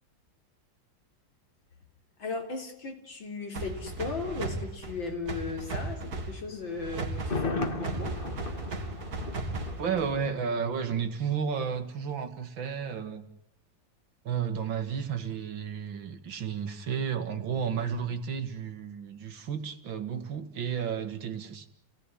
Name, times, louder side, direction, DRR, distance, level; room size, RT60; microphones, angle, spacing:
voice 1, 2.2-8.2, left 4 dB, 85° left, 3 dB, 4.4 m, -36 dB
sound 1, 3.5-10.3, right 2 dB, 55° right, 2.7 m, -36 dB
Thunder, 7.1-11.1 11.3-11.4, left 3 dB, 30° left, 2.1 m, -36 dB
voice 2, 9.8-13.3 14.2-21.7, right 7 dB, 85° right, 8 dB, 2.6 m, -32 dB
29.0 x 17.5 x 10.0 m, 0.74 s
omnidirectional pair, 2.0 m